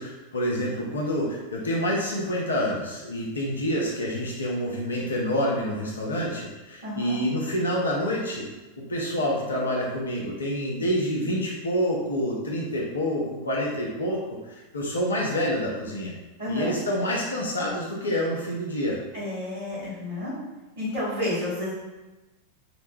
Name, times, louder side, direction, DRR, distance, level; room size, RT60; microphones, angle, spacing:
voice 1, 0.0-8.5 8.8-14.2 14.5-16.1 16.5-19.0, equal, 70° left, -3 dB, 0.6 m, -27 dB
voice 2, 6.8-7.2 16.4-16.8 19.1-20.3 20.8-21.7, left 1 dB, 70° right, -11 dB, 1.3 m, -30 dB
2.9 x 2.2 x 3.1 m, 1.1 s
figure-of-eight pair, 90°, 0 cm